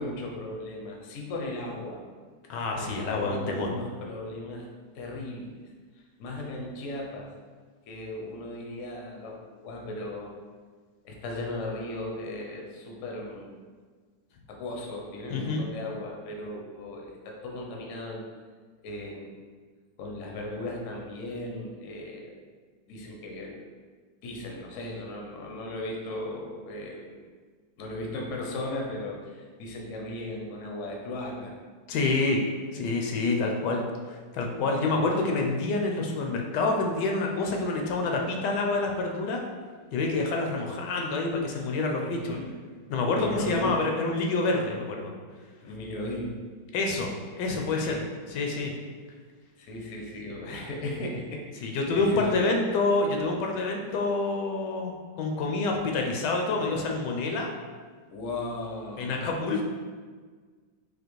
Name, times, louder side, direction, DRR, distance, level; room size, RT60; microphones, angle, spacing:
voice 1, 0.0-2.0 2.7-4.6 4.9-5.5 6.2-7.3 7.9-10.3 11.0-13.5 14.5-18.2 18.8-19.4 20.0-22.3 22.9-23.6 24.2-27.1 27.8-31.5 34.9-35.0 42.0-42.6 43.1-43.8 45.6-46.4 47.8-48.0 49.6-52.4 58.1-59.2, left 1 dB, 60° left, 0 dB, 0.8 m, -36 dB
voice 2, 2.5-3.7 15.3-15.6 31.9-32.4 32.7-33.8 34.1-39.4 39.9-42.3 42.9-45.1 46.7-48.0 48.3-48.7 51.6-57.5 59.0-59.7, left 3 dB, 80° left, 1 dB, 1.2 m, -27 dB
4.1 x 2.8 x 3.0 m, 1.5 s
omnidirectional pair, 1.9 m